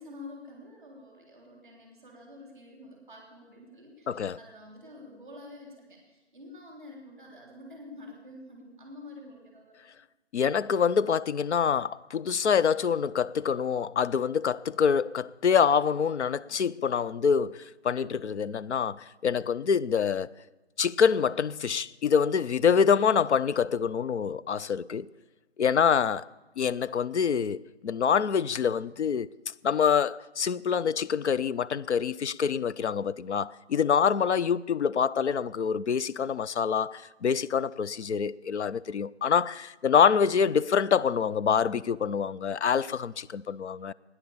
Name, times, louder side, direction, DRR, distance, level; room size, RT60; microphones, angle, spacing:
voice 1, 0.0-9.8, left 2 dB, ahead, 2.9 m, -48 dB
voice 2, 4.1-4.4 10.3-20.3 20.8-25.1 25.6-26.3 26.6-29.3 29.6-43.9, left 7 dB, 80° left, 0.5 m, -26 dB
14.0 x 9.9 x 7.1 m
figure-of-eight pair, 180°, 34 cm